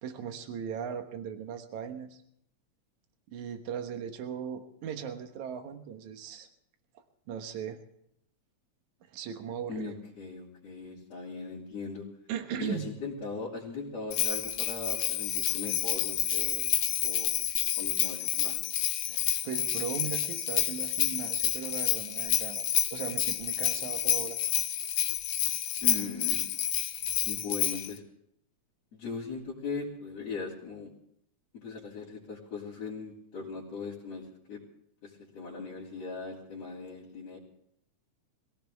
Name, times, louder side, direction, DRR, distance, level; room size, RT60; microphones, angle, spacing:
voice 1, 0.0-2.2 3.3-6.5 6.9-7.8 9.1-10.0 12.3-12.9 19.1-24.4, right 8 dB, 75° right, 7 dB, 2.6 m, -38 dB
voice 2, 9.7-12.1 12.6-16.7 17.0-17.3 17.8-18.6 25.8-26.4 27.3-28.0 28.9-30.9 31.5-34.6 35.0-37.4, left 4 dB, 55° left, -9 dB, 4.0 m, -39 dB
Bell, 14.1-27.9, left 12 dB, 80° left, 2.3 m, -29 dB
22.5 x 16.0 x 3.5 m, 0.71 s
omnidirectional pair, 3.5 m